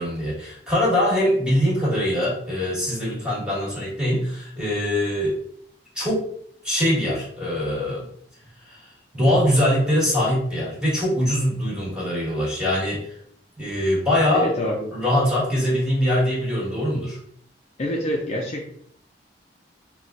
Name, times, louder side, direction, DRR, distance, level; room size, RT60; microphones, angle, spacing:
voice 1, 0.0-5.4 5.9-6.4 6.6-8.1 8.6-13.1 13.6-14.5 14.9-17.2, left 1 dB, 5° right, -7 dB, 1.4 m, -23 dB
voice 2, 14.3-15.0 17.8-18.7, equal, 35° left, -1 dB, 0.4 m, -26 dB
4.0 x 2.2 x 2.5 m, 0.64 s
head